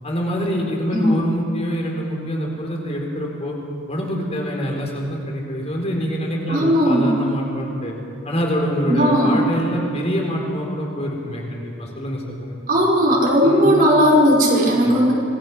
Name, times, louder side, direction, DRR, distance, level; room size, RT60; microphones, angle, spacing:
voice 1, 0.0-3.5 3.9-7.9 8.2-12.5 13.4-13.7 14.8-15.0, equal, 30° left, 0 dB, 4.3 m, -25 dB
voice 2, 6.5-7.1 8.9-9.4 12.7-15.1, equal, 45° right, -3 dB, 5.3 m, -16 dB
26.5 x 19.5 x 6.2 m, 2.6 s
head